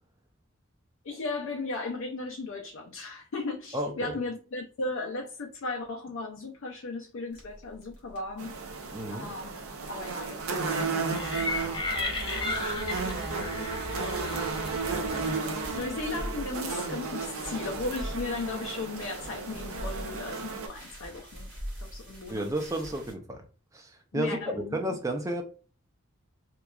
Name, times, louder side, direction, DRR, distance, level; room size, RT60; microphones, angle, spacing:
voice 1, 1.0-8.6 9.1-9.5 9.9-21.5 21.8-22.5 24.1-24.8, left 3 dB, 70° left, 0.4 m, -37 dB
voice 2, 3.7-4.2 8.9-9.3 22.3-23.5 23.7-25.4, right 1 dB, 15° right, 0.4 m, -32 dB
sound 1, 7.3-23.1, equal, 50° right, 1.2 m, -44 dB
sound 2, 8.4-20.7, right 4 dB, 85° right, 0.6 m, -34 dB
sound 3, 11.1-15.9, left 2 dB, 20° left, 0.6 m, -35 dB
2.9 x 2.3 x 2.3 m
head